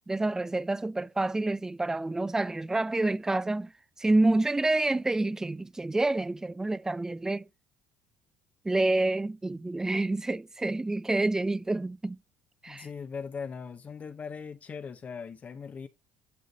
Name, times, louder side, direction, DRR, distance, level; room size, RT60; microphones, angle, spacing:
voice 1, 0.1-3.7 4.0-7.5 8.6-12.2 12.6-12.9, right 2 dB, 15° right, 0.4 m, -28 dB
voice 2, 12.7-15.9, left 6 dB, 35° left, 0.8 m, -39 dB
11.0 x 3.9 x 3.9 m
supercardioid pair, 75°, 4 cm